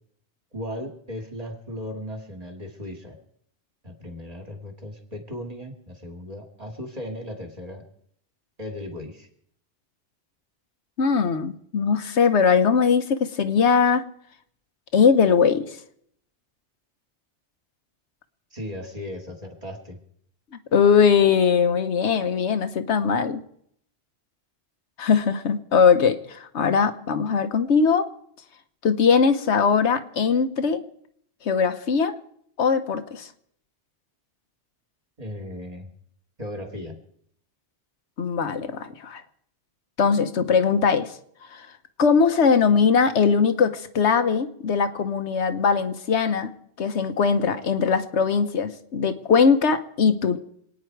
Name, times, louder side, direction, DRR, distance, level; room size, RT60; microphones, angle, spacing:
voice 1, 0.5-3.2 3.8-7.8 8.6-9.3 18.5-20.0 35.2-35.9 36.4-37.0, left 1 dB, 35° right, 2 dB, 2.3 m, -36 dB
voice 2, 11.0-14.0 14.9-15.8 20.7-23.4 25.0-28.1 28.8-30.8 31.4-32.1 32.6-33.3 38.2-39.2 40.0-41.2 41.5-41.7 42.0-46.5 46.8-50.4, left 6 dB, 80° left, 9 dB, 1.2 m, -20 dB
27.0 x 9.4 x 4.6 m, 0.69 s
omnidirectional pair, 1.2 m